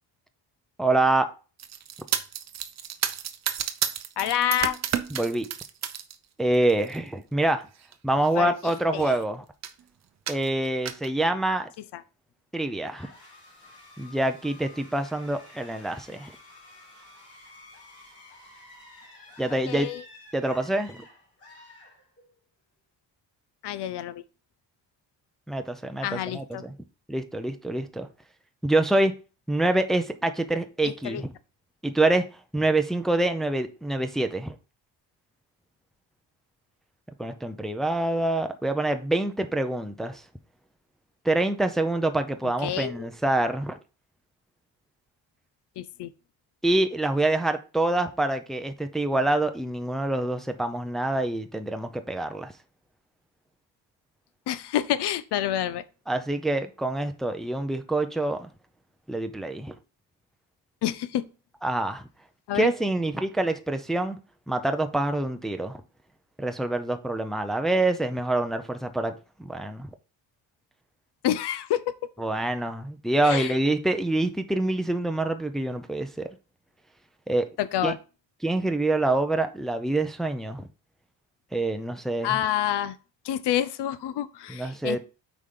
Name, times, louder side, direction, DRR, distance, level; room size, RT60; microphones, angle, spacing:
voice 1, 0.8-1.3 5.1-5.5 6.4-7.7 8.0-9.4 10.3-11.7 12.5-13.1 14.0-16.3 19.4-19.9 20.3-21.0 25.5-26.7 27.1-28.1 28.6-29.1 29.5-31.3 31.8-32.3 32.5-34.5 37.2-40.2 41.2-43.8 46.6-52.5 56.1-58.5 59.1-59.7 61.6-62.0 62.5-64.2 64.5-65.7 66.4-69.1 69.4-69.9 72.2-76.3 77.3-77.5 77.8-77.9 78.4-80.6 81.5-82.4 84.5-85.0, right 2 dB, ahead, 0.5 m, -26 dB
sound 1, 1.6-6.2 6.5-7.0 7.8-7.9 8.3-8.4 8.6-9.2 9.6-9.8 10.3-11.1, right 9 dB, 40° right, 0.7 m, -31 dB
voice 2, 4.2-4.8 8.4-8.5 8.9-9.1 11.9-12.0 19.7-20.0 23.6-24.2 26.0-26.6 30.8-31.2 42.6-43.1 45.8-46.1 54.5-55.8 60.8-61.2 62.5-62.7 71.2-71.9 73.2-73.6 77.6-78.0 82.2-83.0 83.2-85.0, left 11 dB, 65° left, 0.7 m, -28 dB
sound 2, 12.9-22.5, left 2 dB, 30° left, 4.2 m, -51 dB
8.2 x 5.1 x 3.7 m
cardioid pair, 165°, 45 cm